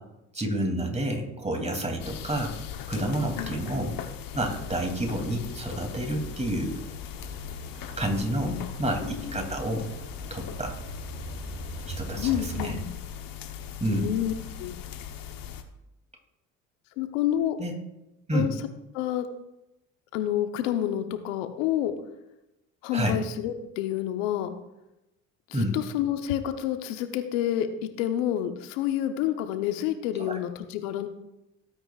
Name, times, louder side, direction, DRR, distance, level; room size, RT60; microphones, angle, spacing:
voice 1, 0.3-2.5 2.9-3.9 4.3-6.8 8.0-9.8 10.3-10.7 12.0-12.8 13.8-14.0 17.6-17.7 18.3-18.5 22.9-23.2 25.5-25.7 30.2-30.4, right 1 dB, 15° right, 2 dB, 3.0 m, -29 dB
sound 1, 2.0-15.6, left 9 dB, 60° left, 1.2 m, -39 dB
voice 2, 3.4-3.9 8.4-9.4 12.1-13.0 13.9-14.8 17.0-17.6 18.3-18.5 18.9-19.2 20.1-21.9 22.8-24.5 25.5-31.1, left 11 dB, 80° left, 8 dB, 1.1 m, -29 dB
sound 2, 6.0-12.7, right 4 dB, 70° right, 2.1 m, -41 dB
18.0 x 8.9 x 2.5 m, 0.93 s
hypercardioid pair, 60°, 39 cm